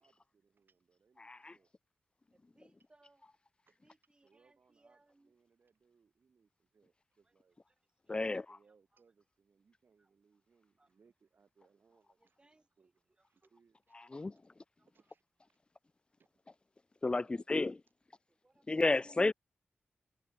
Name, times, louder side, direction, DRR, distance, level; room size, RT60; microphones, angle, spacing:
voice 1, 0.0-1.7 3.7-3.8 4.2-7.6 8.1-14.0 14.9-15.2 15.5-15.6 16.2-16.3 17.1-17.5, right 5 dB, 60° right, 5.0 m, -71 dB
voice 2, 1.2-1.6 8.1-8.4 13.9-14.3 17.0-17.8 18.7-19.3, left 3 dB, 25° left, 0.3 m, -32 dB
voice 3, 2.3-3.2 3.8-5.3 7.2-7.3 8.1-8.2 10.0-10.1 10.8-10.9 12.2-12.9 13.2-13.5 14.8-14.9 18.4-19.2, right 2 dB, 25° right, 7.4 m, -69 dB
wide cardioid pair, 95°, 4 cm